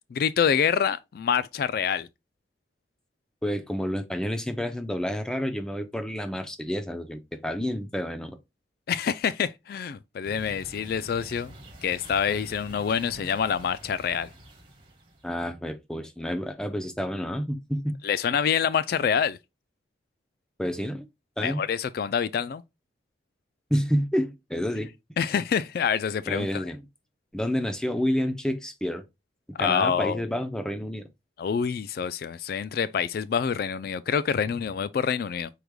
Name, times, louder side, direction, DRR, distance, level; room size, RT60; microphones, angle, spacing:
voice 1, 0.1-2.1 8.9-11.5 11.8-14.3 18.0-19.4 21.4-22.6 25.2-26.6 29.6-30.2 31.4-35.5, left 7 dB, 55° left, 0.3 m, -26 dB
voice 2, 3.4-8.4 15.2-18.0 20.6-21.0 21.4-21.6 23.7-24.9 26.3-26.8 27.3-29.0 29.6-31.1, equal, 5° left, 0.6 m, -29 dB
sound 1, 10.2-15.3, right 1 dB, 30° right, 1.7 m, -47 dB
5.0 x 4.7 x 2.2 m
head